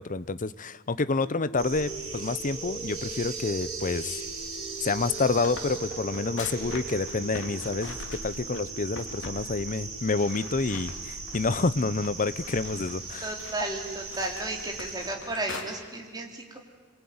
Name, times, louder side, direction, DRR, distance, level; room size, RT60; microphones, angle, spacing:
voice 1, 0.0-4.2 4.8-8.0 8.2-13.3, left 3 dB, 40° left, 16 dB, 0.7 m, -28 dB
sound 1, 1.1-11.1, right 3 dB, 10° left, 5.6 m, -43 dB
sound 2, 1.6-15.2, right 3 dB, 70° right, 6.7 m, -39 dB
sound 3, 4.8-8.6 9.0-9.4 9.7-9.8 10.2-11.6 12.0-15.6, left 3 dB, 60° left, 3.1 m, -43 dB
voice 2, 13.2-16.6, right 2 dB, 20° right, 1 dB, 3.7 m, -33 dB
27.0 x 23.0 x 9.6 m, 1.5 s
head